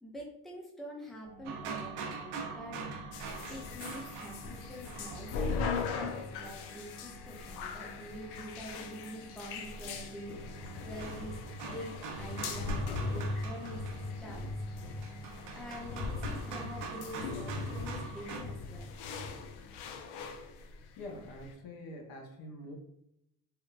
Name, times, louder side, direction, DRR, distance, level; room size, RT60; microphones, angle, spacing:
voice 1, 0.0-2.8 3.5-5.3 5.7-13.9 14.2-14.8 15.5-18.9 19.3-19.4, equal, ahead, -2 dB, 0.7 m, -46 dB
sound 1, 1.2-17.1, right 2 dB, 35° right, 0.8 m, -54 dB
sound 2, 1.5-5.8 8.2-8.3 10.1-18.4, right 5 dB, 85° right, 0.6 m, -44 dB
sound 3, 3.1-21.5, left 4 dB, 85° left, 0.5 m, -39 dB
voice 2, 21.0-22.8, left 1 dB, 65° left, 1 dB, 0.9 m, -45 dB
3.6 x 2.1 x 2.4 m, 0.78 s
cardioid pair, 90°, 39 cm